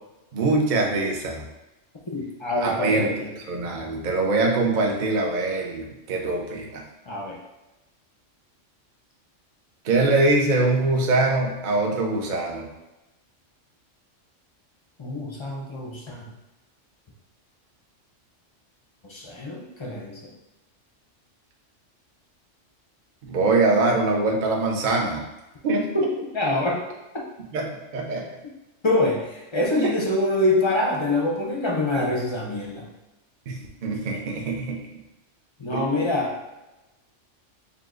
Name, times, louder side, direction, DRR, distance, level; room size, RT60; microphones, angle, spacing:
voice 1, 0.3-1.4 2.6-6.8 9.8-12.7 23.2-25.2 25.6-25.9 27.5-28.2 29.8-29.9 31.9-32.0 33.5-34.8 35.7-36.1, right 2 dB, 50° right, 0 dB, 0.7 m, -23 dB
voice 2, 2.1-3.3 7.1-7.3 15.0-16.3 19.0-20.2 25.9-26.1 26.3-26.8 28.8-32.9 35.6-36.4, left 2 dB, 35° left, -2 dB, 0.5 m, -25 dB
6.6 x 2.3 x 2.4 m, 1.0 s
omnidirectional pair, 1.3 m